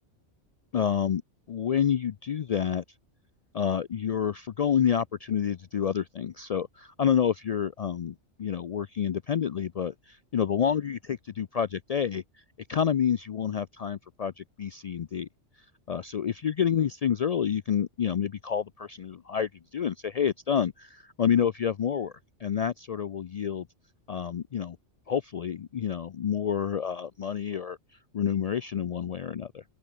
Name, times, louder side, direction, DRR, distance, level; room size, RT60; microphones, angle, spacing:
voice 1, 0.7-1.2 1.5-2.8 3.5-12.2 12.7-15.3 15.9-22.1 22.4-23.7 24.1-24.8 25.1-27.8 28.1-29.6, left 8 dB, 75° left, 0.3 m, -28 dB
open air
omnidirectional pair, 1.2 m